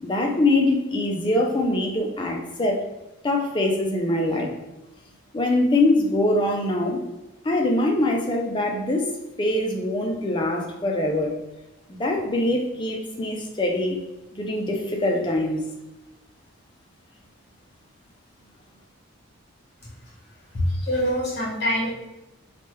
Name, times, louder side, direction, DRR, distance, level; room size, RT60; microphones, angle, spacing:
voice 1, 0.0-2.8 3.2-4.5 5.3-7.0 7.4-9.1 9.4-11.3 11.9-14.0 14.3-15.6, left 1 dB, 20° left, 1 dB, 0.4 m, -23 dB
voice 2, 20.5-21.9, equal, 50° left, -4 dB, 1.1 m, -24 dB
3.3 x 2.2 x 2.9 m, 0.99 s
head